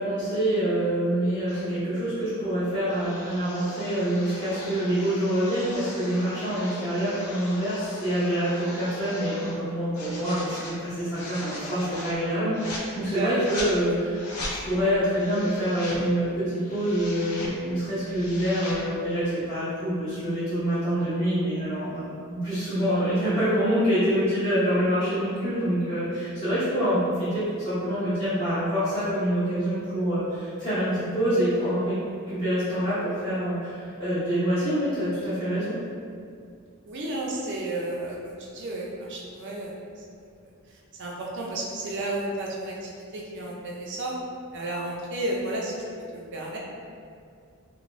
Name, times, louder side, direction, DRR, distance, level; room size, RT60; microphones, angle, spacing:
voice 1, 0.0-14.2 14.5-31.9 32.3-35.7, equal, 20° left, -15 dB, 0.7 m, -26 dB
sound 1, 1.5-1.7 2.8-9.6 9.9-10.7 11.1-12.2 12.5-12.8 13.4-13.7 14.1-14.6 15.1-16.0 16.5-17.5 17.9-18.8, left 1 dB, 85° left, 0.5 m, -39 dB
voice 2, 13.1-13.5 36.9-40.0 41.0-44.1 44.5-45.7 46.1-46.6, right 2 dB, 50° right, -3 dB, 0.5 m, -32 dB
2.5 x 2.2 x 3.1 m, 2.3 s
head